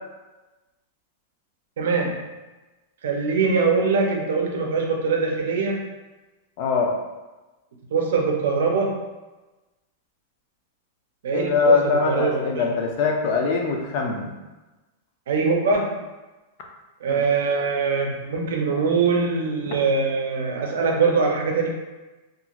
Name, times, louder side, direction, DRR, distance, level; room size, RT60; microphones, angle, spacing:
voice 1, 1.8-2.2 3.0-5.8 7.9-9.0 11.2-12.7 15.3-16.0 17.0-21.7, right 4 dB, 80° right, 1 dB, 0.5 m, -22 dB
voice 2, 6.6-6.9 11.3-14.3 17.1-17.2, left 4 dB, 40° left, 1 dB, 0.4 m, -22 dB
2.4 x 2.4 x 2.9 m, 1.1 s
supercardioid pair, 175°, 0 cm